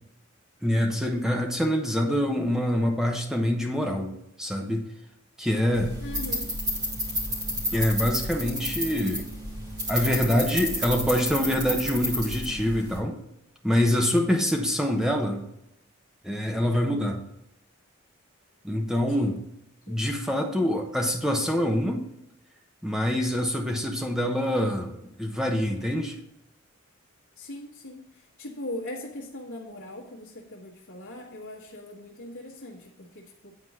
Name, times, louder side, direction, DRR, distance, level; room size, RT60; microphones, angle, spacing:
voice 1, 0.6-4.1 4.4-4.8 5.4-5.9 7.7-9.3 9.9-13.1 13.6-15.5 16.2-17.2 18.6-19.4 19.9-22.1 22.8-26.1, equal, ahead, 2 dB, 0.9 m, -25 dB
sound 1, 5.7-13.0, equal, 20° right, 2.2 m, -31 dB
voice 2, 6.0-6.5 19.2-19.3 19.9-20.0 27.4-33.5, left 1 dB, 75° left, -6 dB, 1.5 m, -40 dB
9.5 x 4.2 x 6.1 m, 0.83 s
head